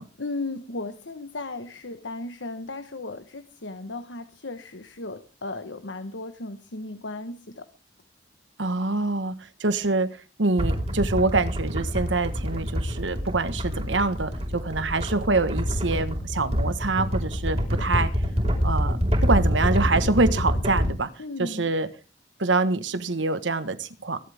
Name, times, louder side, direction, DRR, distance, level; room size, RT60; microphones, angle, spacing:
voice 1, 0.2-7.6 21.2-21.7, left 2 dB, 85° left, 9 dB, 1.3 m, -35 dB
voice 2, 8.6-10.1 10.4-18.1 18.6-21.1 21.4-21.9 22.4-24.2, right 3 dB, 85° right, 12 dB, 1.4 m, -25 dB
sound 1, 10.6-20.9, equal, 35° right, 5.0 m, -26 dB
23.0 x 12.0 x 3.6 m, 0.35 s
head